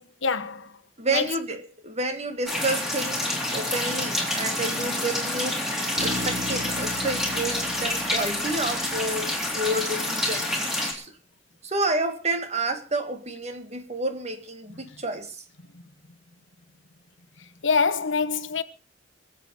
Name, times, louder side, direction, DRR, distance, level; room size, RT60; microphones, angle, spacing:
voice 1, 0.0-0.8 1.1-1.3 4.8-4.9 17.4-18.6, left 5 dB, 75° left, 1.1 m, -26 dB
voice 2, 1.0-5.7 6.0-11.2 11.6-15.4, right 2 dB, 35° right, 1.9 m, -30 dB
sound 1, 2.5-10.9, left 1 dB, ahead, 3.5 m, -28 dB
Bass guitar, 6.0-9.7, left 1 dB, 65° right, 3.4 m, -37 dB
24.0 x 8.0 x 5.5 m
head